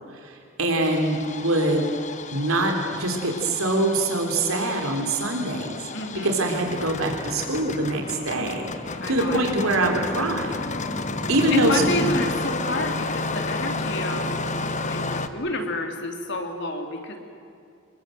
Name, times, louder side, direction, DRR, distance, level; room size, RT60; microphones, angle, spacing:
voice 1, 0.1-1.9 2.3-5.9 6.2-8.7 9.1-10.6 11.3-11.8, right 2 dB, 85° right, 2 dB, 3.6 m, -24 dB
Engine starting, 0.8-15.3, left 3 dB, 35° left, 1.3 m, -31 dB
voice 2, 5.9-6.4 8.4-8.7 9.0-9.4 11.5-14.3 14.8-17.2, left 1 dB, 55° left, 4 dB, 3.5 m, -30 dB
28.5 x 22.0 x 7.9 m, 2.6 s
head